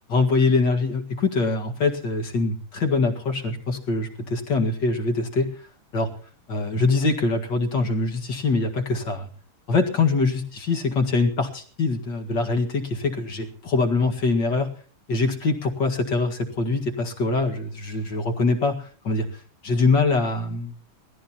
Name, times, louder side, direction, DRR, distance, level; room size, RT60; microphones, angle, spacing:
voice 1, 0.1-5.5 5.9-6.1 6.5-9.3 9.7-10.4 10.7-14.7 15.1-20.8, left 3 dB, 55° left, 4 dB, 2.6 m, -23 dB
19.5 x 14.5 x 4.3 m, 0.42 s
omnidirectional pair, 2.4 m